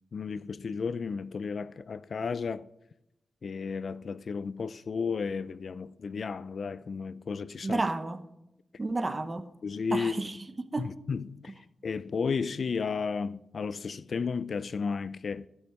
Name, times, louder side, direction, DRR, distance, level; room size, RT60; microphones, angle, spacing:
voice 1, 0.1-2.7 3.4-7.8 9.6-10.2 10.8-15.5, left 5 dB, 65° left, 0.4 m, -33 dB
voice 2, 7.6-8.3 8.8-9.5 9.9-10.9, right 2 dB, 30° right, 1.0 m, -31 dB
15.0 x 6.3 x 7.8 m
cardioid pair, 75°, 0 cm